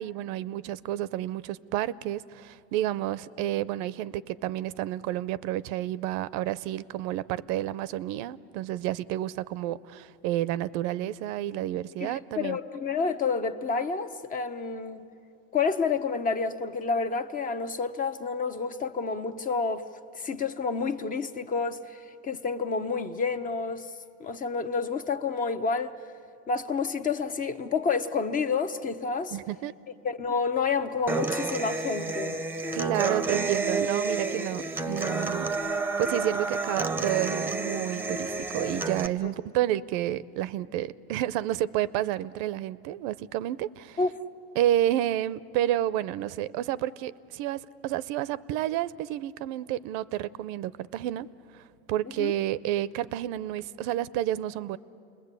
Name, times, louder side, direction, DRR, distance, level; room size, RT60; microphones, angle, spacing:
voice 1, 0.0-12.6 29.3-29.7 32.7-35.5 36.0-44.0 44.6-51.3 51.5-54.8, right 13 dB, 70° right, 0.7 m, -30 dB
voice 2, 12.0-15.1 15.5-19.8 20.1-23.9 24.2-25.9 26.5-29.4 30.0-32.4 39.2-39.3 44.0-44.2 52.2-52.3, left 5 dB, 25° left, 0.9 m, -29 dB
Human voice / Acoustic guitar, 31.1-39.1, right 3 dB, 5° right, 0.8 m, -30 dB
29.0 x 21.0 x 8.3 m
cardioid pair, 140°, 31 cm